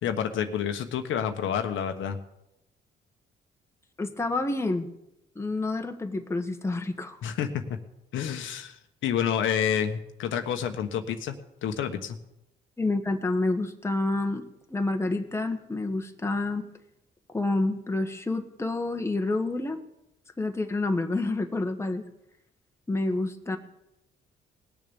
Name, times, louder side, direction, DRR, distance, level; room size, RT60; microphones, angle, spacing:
voice 1, 0.0-2.2 7.2-7.5 8.1-12.2, left 8 dB, 80° left, 6 dB, 1.2 m, -29 dB
voice 2, 4.0-4.9 5.3-7.2 12.8-14.4 14.7-16.6 17.3-19.8 20.4-22.0 22.9-23.6, left 2 dB, 15° left, 5 dB, 1.4 m, -28 dB
19.5 x 7.1 x 7.1 m, 0.85 s
cardioid pair, 90°, 20 cm